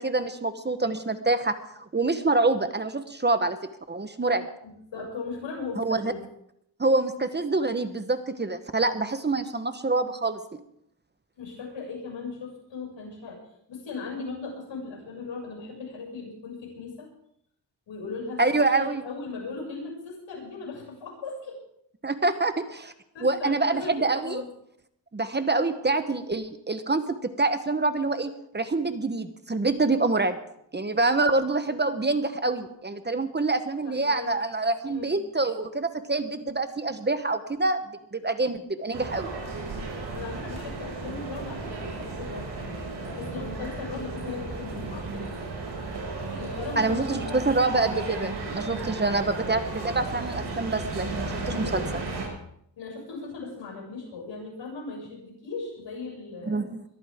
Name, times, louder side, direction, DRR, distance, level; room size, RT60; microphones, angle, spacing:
voice 1, 0.0-3.6 3.9-4.4 5.8-6.1 6.8-10.6 18.4-19.0 22.0-22.9 23.2-24.4 25.1-30.4 30.7-37.8 38.1-39.3 46.8-51.8 56.5-56.8, right 3 dB, 25° right, 10 dB, 1.1 m, -26 dB
voice 2, 4.6-6.2 11.4-13.4 13.7-17.1 17.9-21.6 23.1-24.5 33.8-34.3 34.8-35.1 40.1-45.3 46.3-47.4 51.5-51.8 52.8-56.7, left 4 dB, 85° left, -2 dB, 7.1 m, -38 dB
sound 1, 38.9-52.3, right 3 dB, 65° right, 6.2 m, -34 dB
22.0 x 14.0 x 3.6 m, 0.73 s
wide cardioid pair, 105°, 44 cm